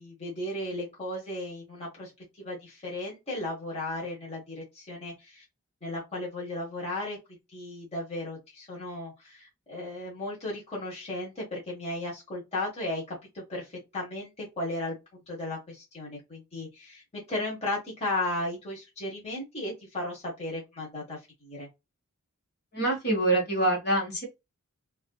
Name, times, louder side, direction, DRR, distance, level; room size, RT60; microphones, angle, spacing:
voice 1, 0.0-2.1 2.4-5.4 5.8-7.2 7.5-21.7, left 1 dB, 30° left, 1.3 m, -35 dB
voice 2, 22.7-24.3, right 1 dB, 50° left, 1.6 m, -25 dB
3.6 x 2.6 x 2.3 m
head